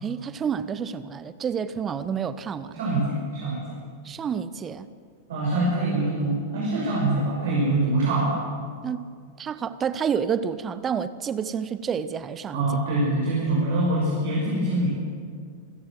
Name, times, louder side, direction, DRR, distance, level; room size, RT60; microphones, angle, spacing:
voice 1, 0.0-2.8 4.0-4.9 8.8-9.0 9.4-12.7, right 7 dB, 25° right, 0.9 m, -29 dB
voice 2, 2.7-3.7 5.3-8.3 12.5-14.9, right 2 dB, 60° right, 5.9 m, -24 dB
26.5 x 15.5 x 7.9 m
figure-of-eight pair, 90°, 0 cm